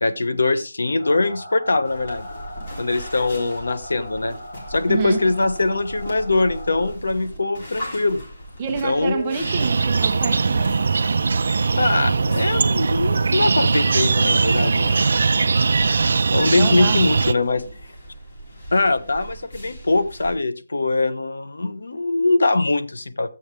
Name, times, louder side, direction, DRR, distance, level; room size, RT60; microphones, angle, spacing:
voice 1, 0.0-2.3 2.8-4.4 4.7-8.2 8.8-9.4 11.7-15.0 16.3-17.6 18.7-23.3, left 2 dB, 75° left, 1.0 m, -22 dB
sound 1, 1.0-6.9, left 1 dB, 55° left, 3.3 m, -39 dB
sound 2, 1.8-20.3, right 1 dB, 35° left, 3.4 m, -39 dB
voice 2, 4.9-5.3 8.6-10.8 16.6-17.1, right 6 dB, 15° right, 0.8 m, -27 dB
sound 3, 9.4-17.3, right 4 dB, 45° right, 0.5 m, -20 dB
12.5 x 7.9 x 3.4 m
hypercardioid pair, 175°, 0 cm